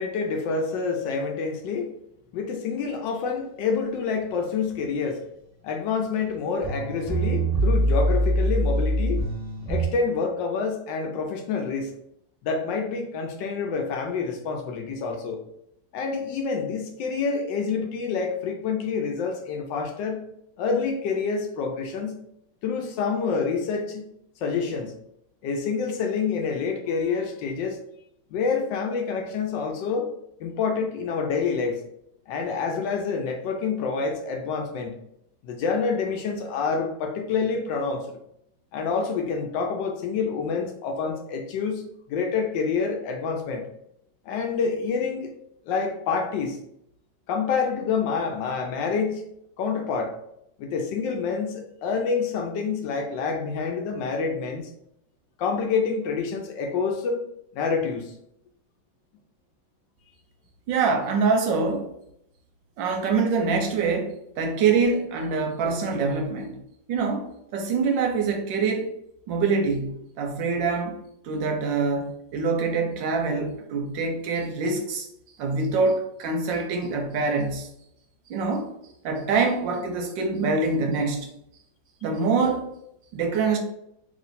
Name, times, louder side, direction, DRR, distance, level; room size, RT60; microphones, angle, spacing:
voice 1, 0.0-1.9 2.3-5.2 5.6-9.2 9.7-11.9 12.4-15.4 15.9-20.2 20.6-22.2 22.6-24.1 24.4-24.9 25.4-27.8 28.3-30.1 30.4-31.8 32.3-35.0 35.4-38.1 38.7-41.8 42.1-43.7 44.3-45.3 45.7-46.6 47.3-49.2 49.6-50.2 50.6-54.7 55.4-57.2 57.5-58.1, left 5 dB, 75° left, 3 dB, 1.2 m, -27 dB
sound 1, 6.3-6.4 6.6-9.8, right 1 dB, 15° right, 0.6 m, -23 dB
voice 2, 60.7-61.9 62.8-66.6 66.9-68.9 69.3-75.1 75.4-77.7 78.3-78.7 79.0-81.3 82.0-82.7 83.1-83.6, right 4 dB, 75° right, 4 dB, 1.2 m, -25 dB
3.1 x 3.0 x 4.0 m, 0.76 s
omnidirectional pair, 2.3 m